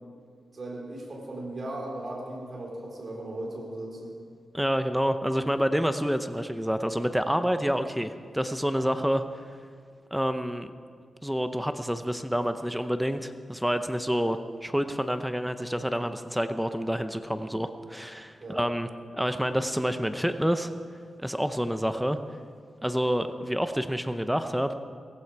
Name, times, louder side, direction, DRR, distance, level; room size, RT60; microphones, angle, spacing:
voice 1, 0.5-4.2 18.4-18.6, right 1 dB, 45° right, -2 dB, 3.8 m, -37 dB
voice 2, 4.5-9.4 10.1-10.7 11.2-18.9 19.1-20.7 21.2-22.2 22.8-24.7, equal, 5° right, 9 dB, 0.7 m, -28 dB
17.5 x 15.5 x 4.7 m, 2.1 s
wide cardioid pair, 100°, 0 cm